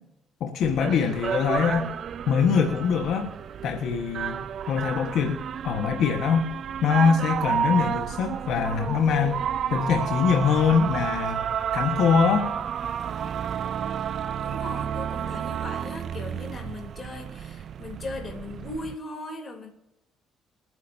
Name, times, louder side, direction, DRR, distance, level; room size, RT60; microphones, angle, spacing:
voice 1, 0.4-1.9 2.3-3.3 3.6-4.4 4.7-6.5 6.8-9.4 9.7-12.5, left 6 dB, 70° left, 4 dB, 1.4 m, -23 dB
sound 1, 0.6-19.0, right 8 dB, 55° right, 0.4 m, -31 dB
voice 2, 14.4-19.7, left 2 dB, 35° left, 2 dB, 3.3 m, -38 dB
26.0 x 9.6 x 2.8 m, 0.91 s
cardioid pair, 105°, 0 cm